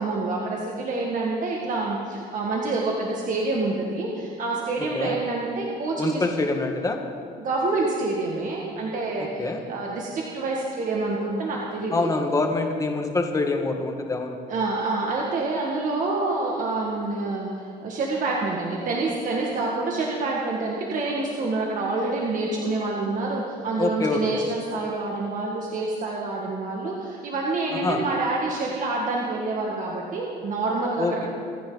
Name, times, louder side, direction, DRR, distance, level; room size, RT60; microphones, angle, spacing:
voice 1, 0.0-6.2 7.4-12.1 14.5-31.3, right 3 dB, 50° right, -2 dB, 1.9 m, -27 dB
voice 2, 6.0-7.0 9.4-9.6 11.9-14.4 23.8-24.4 27.8-28.0 31.0-31.3, left 3 dB, 20° left, 3 dB, 1.7 m, -25 dB
26.5 x 10.0 x 4.0 m, 2.3 s
cardioid pair, 110°, 17 cm